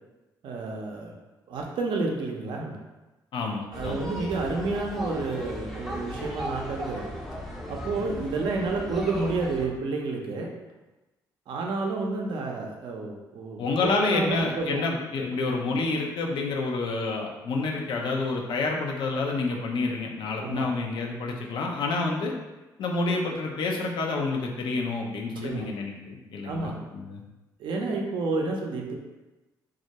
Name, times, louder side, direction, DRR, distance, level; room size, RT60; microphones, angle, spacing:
voice 1, 0.4-1.1 1.5-2.7 3.7-7.0 7.7-10.5 11.5-14.9 20.4-20.7 25.4-25.7 26.4-26.8 27.6-28.9, right 3 dB, 65° right, 0 dB, 0.5 m, -30 dB
voice 2, 3.3-4.1 13.6-22.3 22.8-27.2, left 3 dB, 65° left, 0 dB, 0.5 m, -28 dB
sound 1, 3.7-9.7, equal, ahead, 0.5 m, -36 dB
2.3 x 2.1 x 2.8 m, 1.1 s
supercardioid pair, 65°, 9 cm